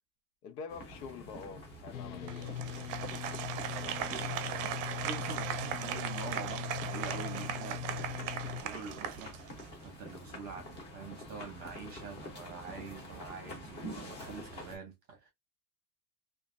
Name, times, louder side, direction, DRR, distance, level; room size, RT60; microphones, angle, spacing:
voice 1, 0.4-2.6 3.8-5.0, left 6 dB, 85° left, 0.9 m, -47 dB
sound 1, 0.7-14.8, equal, 25° left, 0.7 m, -47 dB
sound 2, 1.9-8.6, left 9 dB, 55° left, 0.5 m, -41 dB
Applause, 2.3-9.8, right 10 dB, 55° right, 0.5 m, -38 dB
voice 2, 5.0-8.3 8.6-9.5 9.8-15.3, right 5 dB, 20° right, 0.7 m, -45 dB
2.9 x 2.5 x 2.5 m
supercardioid pair, 180°, 46 cm